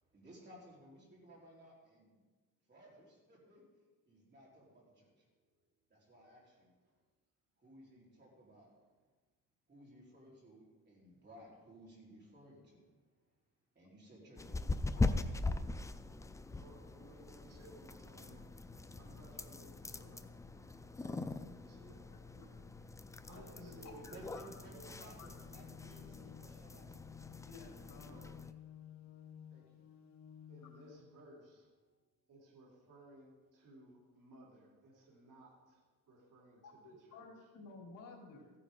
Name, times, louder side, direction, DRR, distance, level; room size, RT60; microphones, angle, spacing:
voice 1, 0.1-2.2 2.7-3.6 4.1-5.3 5.9-6.7 7.6-8.7 9.7-12.8 13.7-15.1 24.1-27.0 29.5-29.8, right 1 dB, 30° right, 4.2 m, -58 dB
sound 1, 14.4-28.5, left 3 dB, 10° left, 0.3 m, -41 dB
voice 2, 15.1-15.7 16.5-22.6 23.2-25.2 28.0-28.4 30.5-31.8 32.3-37.5, right 1 dB, 70° right, 3.2 m, -60 dB
voice 3, 23.3-24.5 25.1-25.3 27.4-28.2 36.6-38.5, left 3 dB, 75° left, 3.6 m, -54 dB
sound 2, 25.0-31.0, left 9 dB, 55° left, 1.0 m, -55 dB
15.5 x 9.8 x 3.9 m
cardioid pair, 140°, 34 cm